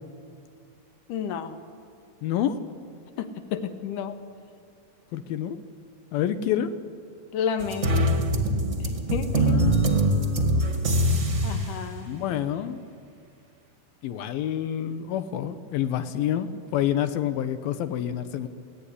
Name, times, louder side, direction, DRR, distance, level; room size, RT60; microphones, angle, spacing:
voice 1, 1.1-1.6 3.2-4.2 7.3-8.1 9.1-9.6 11.4-12.1, left 7 dB, 70° left, 7 dB, 2.8 m, -31 dB
voice 2, 2.2-2.6 5.1-5.6 6.1-6.7 9.3-10.9 12.0-12.8 14.0-18.5, left 10 dB, 85° left, 9 dB, 2.8 m, -28 dB
sound 1, 7.6-11.7, right 1 dB, 30° right, 1.5 m, -23 dB
30.0 x 17.0 x 9.8 m, 2.4 s
omnidirectional pair, 4.1 m